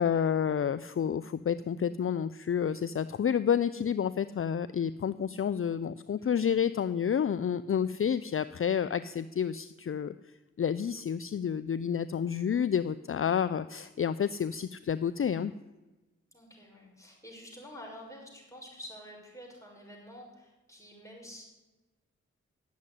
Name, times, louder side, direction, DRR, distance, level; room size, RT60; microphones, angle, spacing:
voice 1, 0.0-15.5, left 8 dB, 50° left, 14 dB, 0.5 m, -30 dB
voice 2, 13.2-13.5 16.3-21.4, equal, 10° left, -2 dB, 6.2 m, -49 dB
11.5 x 8.4 x 9.8 m, 1.1 s
cardioid pair, 45°, 29 cm